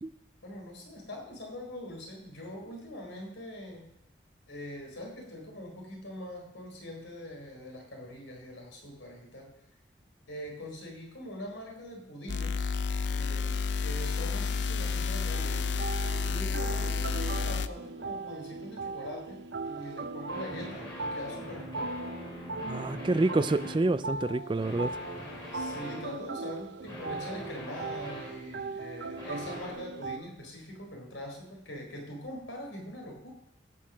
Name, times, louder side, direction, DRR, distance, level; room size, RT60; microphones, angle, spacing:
voice 1, 0.4-3.8 4.5-9.5 10.3-12.7 13.1-13.6 13.8-15.5 16.2-21.9 25.5-33.3, left 1 dB, 85° left, 1 dB, 4.0 m, -43 dB
sound 1, 12.3-17.7, left 5 dB, 70° left, 0.5 m, -30 dB
sound 2, 15.3-30.2, right 3 dB, 70° right, 0.6 m, -39 dB
sound 3, 20.3-23.8 24.6-26.1 26.9-28.6 29.2-29.7, left 1 dB, 25° left, 3.5 m, -43 dB
voice 2, 22.7-24.9, right 2 dB, 25° right, 15 dB, 0.4 m, -28 dB
16.0 x 6.3 x 6.2 m, 0.83 s
head